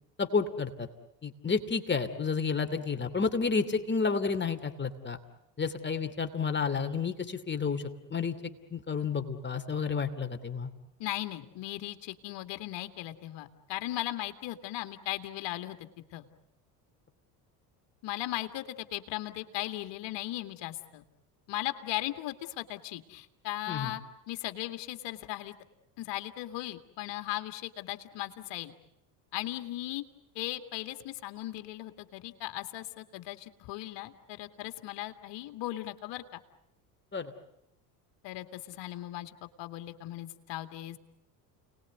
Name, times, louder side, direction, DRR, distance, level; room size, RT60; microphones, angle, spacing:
voice 1, 0.2-0.9 1.2-5.2 5.6-7.8 8.1-8.3 8.7-10.7 23.7-23.9 37.1-37.3, left 5 dB, 25° left, 7 dB, 2.8 m, -30 dB
voice 2, 11.0-15.8 16.1-16.3 18.0-21.0 21.5-24.0 24.3-25.5 26.0-28.7 29.3-30.0 30.3-36.4 38.2-39.3 39.6-41.0, left 15 dB, 65° left, 7 dB, 2.4 m, -37 dB
30.0 x 20.0 x 9.4 m, 0.84 s
supercardioid pair, 85°, 46 cm